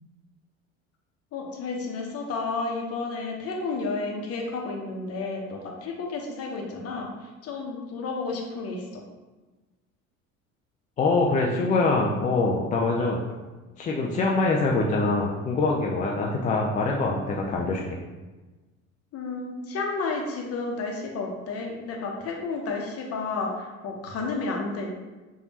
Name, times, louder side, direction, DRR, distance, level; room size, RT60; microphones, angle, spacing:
voice 1, 1.3-7.1 7.4-8.8 19.1-24.9, left 3 dB, 35° left, 0 dB, 1.0 m, -31 dB
voice 2, 11.0-13.2 13.8-18.0, left 3 dB, 20° left, -1 dB, 0.4 m, -24 dB
6.8 x 2.6 x 2.9 m, 1.2 s
figure-of-eight pair, 65°, 40 cm